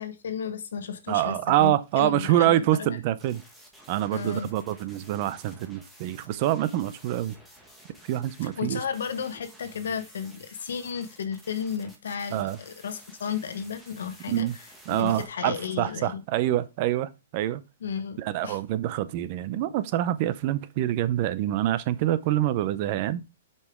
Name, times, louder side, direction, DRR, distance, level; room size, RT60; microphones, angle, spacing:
voice 1, 0.0-3.0 4.1-4.5 8.4-14.6 14.9-16.2 17.8-18.6, left 7 dB, 80° left, 0.9 m, -33 dB
voice 2, 1.1-3.4 3.9-7.3 8.1-8.8 12.3-12.6 14.3-14.5 14.9-17.6 18.2-23.2, right 13 dB, 40° right, 0.5 m, -26 dB
sound 1, 3.2-15.3, equal, ahead, 1.4 m, -52 dB
6.7 x 5.3 x 3.6 m
hypercardioid pair, 160°, 0 cm